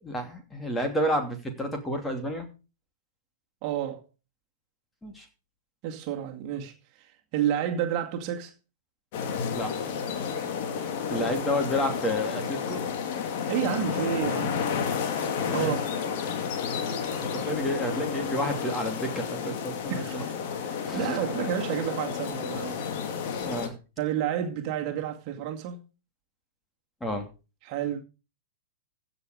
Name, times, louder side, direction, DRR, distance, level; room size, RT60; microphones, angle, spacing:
voice 1, 0.0-2.5 5.0-5.3 9.5-9.7 11.1-12.8 15.5-15.7 17.0-20.2 20.9-21.2 23.4-23.7 27.0-27.3, equal, 10° left, 2.7 m, -30 dB
voice 2, 3.6-4.0 5.8-6.7 7.0-8.5 11.1-11.3 13.2-14.6 15.5-15.8 19.9-20.3 20.6-22.8 24.0-25.8 27.6-28.0, right 10 dB, 40° right, 2.2 m, -30 dB
sound 1, 9.1-23.7, left 6 dB, 45° left, 2.5 m, -31 dB
15.5 x 7.0 x 5.1 m
figure-of-eight pair, 105°, 0 cm